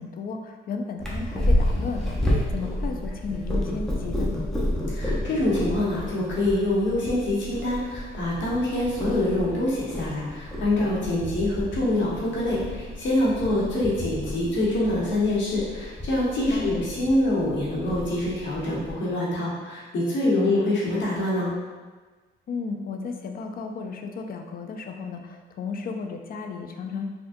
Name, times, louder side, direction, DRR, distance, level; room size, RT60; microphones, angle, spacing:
voice 1, 0.0-2.2 2.5-4.3 16.5-16.8 20.3-20.7 22.5-27.1, left 4 dB, 45° left, 4 dB, 0.4 m, -34 dB
Purr, 1.0-18.9, left 1 dB, ahead, 0.7 m, -30 dB
voice 2, 4.9-21.5, left 1 dB, 65° left, -6 dB, 1.1 m, -25 dB
3.5 x 2.3 x 2.6 m, 1.3 s
cardioid pair, 90°, 20 cm